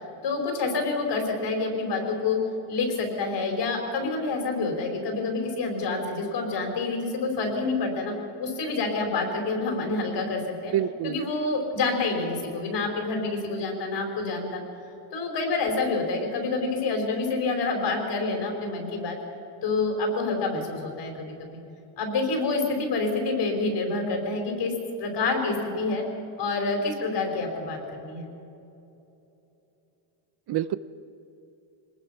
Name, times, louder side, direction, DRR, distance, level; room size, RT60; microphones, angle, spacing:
voice 1, 0.2-2.4 2.7-8.1 8.4-10.7 11.0-14.6 15.1-19.2 19.6-21.6 22.0-24.7 25.0-26.0 26.4-28.2, left 3 dB, 55° left, 2 dB, 5.0 m, -27 dB
voice 2, 10.7-11.2 30.5-30.8, right 12 dB, 50° right, 14 dB, 0.7 m, -27 dB
25.0 x 20.0 x 5.9 m, 2.9 s
cardioid pair, 150°, 50 cm